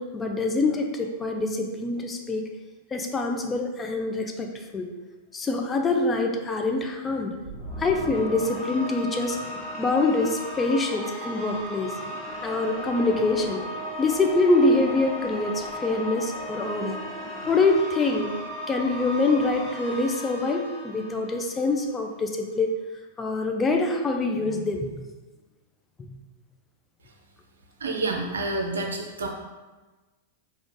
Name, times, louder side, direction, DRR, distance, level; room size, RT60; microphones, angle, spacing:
voice 1, 0.0-2.5 2.9-4.9 5.3-7.3 7.8-9.4 9.8-11.9 12.4-13.6 14.0-17.0 17.5-18.3 18.7-22.7 23.2-24.9, left 3 dB, 20° left, 3 dB, 0.5 m, -25 dB
sound 1, 7.4-21.8, equal, 5° right, 1.4 m, -36 dB
voice 2, 27.8-29.3, right 2 dB, 85° right, 1 dB, 0.6 m, -28 dB
3.7 x 2.4 x 3.6 m, 1.2 s
hypercardioid pair, 105°, 0 cm